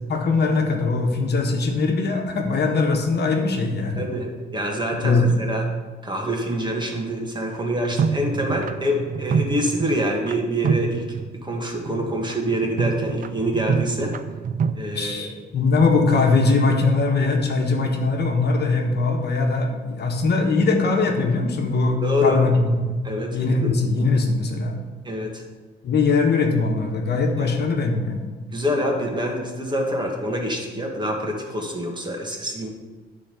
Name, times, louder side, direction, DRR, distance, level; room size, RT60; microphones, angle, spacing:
voice 1, 0.1-4.0 4.9-5.4 14.9-22.8 23.3-24.8 25.8-28.3, left 3 dB, 55° left, 2 dB, 1.3 m, -21 dB
voice 2, 4.0-5.7 6.0-14.2 14.7-15.3 22.0-22.4 23.0-23.8 25.0-25.4 27.4-27.5 28.5-32.7, equal, 20° right, 0 dB, 1.9 m, -26 dB
sound 1, 7.9-10.4 10.6-11.6 11.9-14.7, right 6 dB, 45° right, 0.5 m, -26 dB
9.9 x 3.9 x 6.9 m, 1.3 s
cardioid pair, 90°, 20 cm